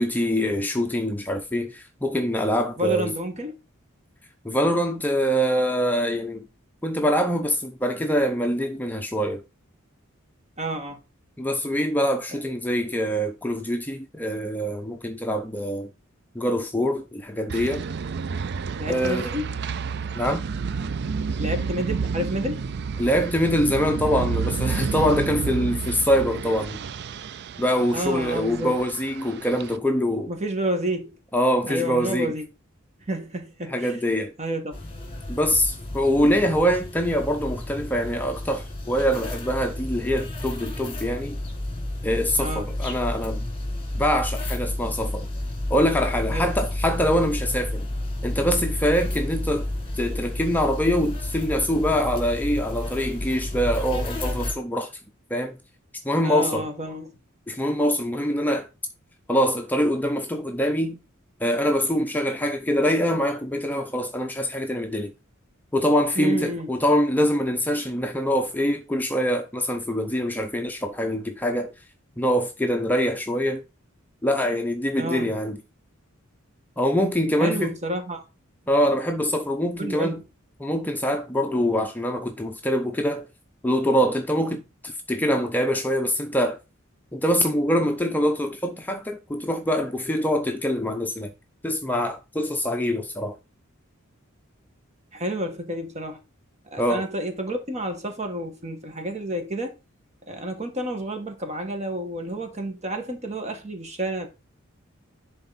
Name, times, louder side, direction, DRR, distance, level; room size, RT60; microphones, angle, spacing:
voice 1, 0.0-3.1 4.4-6.5 6.8-9.4 11.4-15.9 16.3-17.8 18.9-19.2 20.1-20.5 23.0-26.8 27.6-30.3 31.3-32.3 33.7-34.3 35.3-41.4 42.0-43.5 43.9-45.3 45.7-47.9 48.2-49.7 50.0-54.9 55.3-55.6 56.0-56.7 57.5-58.7 59.3-61.0 61.4-65.1 65.7-71.7 72.2-73.6 74.2-75.6 76.8-77.8 78.7-80.2 80.6-83.2 83.6-86.6 87.1-91.3 91.6-93.4 96.8-97.0, equal, 10° left, 0.7 m, -24 dB
voice 2, 2.8-3.6 10.6-11.0 12.3-12.4 18.8-19.5 21.4-22.6 27.9-28.7 30.3-31.2 31.6-32.5 33.1-34.0 34.4-34.8 42.4-42.7 46.3-46.6 56.2-57.1 66.2-66.7 75.0-75.3 77.4-78.2 79.8-80.2 95.1-96.2 96.6-99.8 100.3-104.3, right 1 dB, 35° right, 1.8 m, -30 dB
sound 1, 17.5-29.8, right 5 dB, 55° right, 0.4 m, -30 dB
sound 2, 34.7-54.5, left 1 dB, 30° left, 2.2 m, -31 dB
10.5 x 4.2 x 4.2 m
head